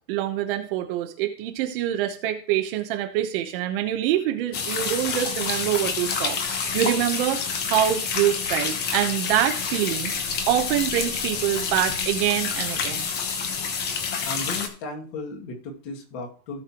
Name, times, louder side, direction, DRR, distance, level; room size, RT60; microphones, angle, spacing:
voice 1, 0.1-10.1 10.5-13.1, right 12 dB, 35° right, 6 dB, 1.0 m, -25 dB
sound 1, 4.5-14.7, left 5 dB, 20° left, 1.0 m, -28 dB
voice 2, 14.2-16.6, left 2 dB, 35° left, 2 dB, 2.4 m, -35 dB
17.0 x 5.8 x 3.0 m, 0.42 s
supercardioid pair, 160°, 48 cm